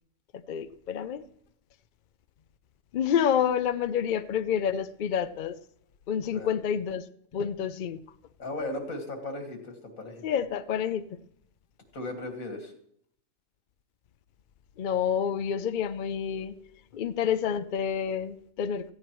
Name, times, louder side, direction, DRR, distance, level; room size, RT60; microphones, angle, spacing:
voice 1, 0.5-1.2 2.9-5.6 6.1-7.0 7.3-8.0 10.2-11.1 14.8-16.6 16.9-18.9, left 8 dB, 55° left, 0.5 m, -28 dB
voice 2, 8.4-10.2 11.9-12.7, left 2 dB, 80° left, 2.3 m, -36 dB
17.5 x 14.5 x 3.1 m
omnidirectional pair, 1.4 m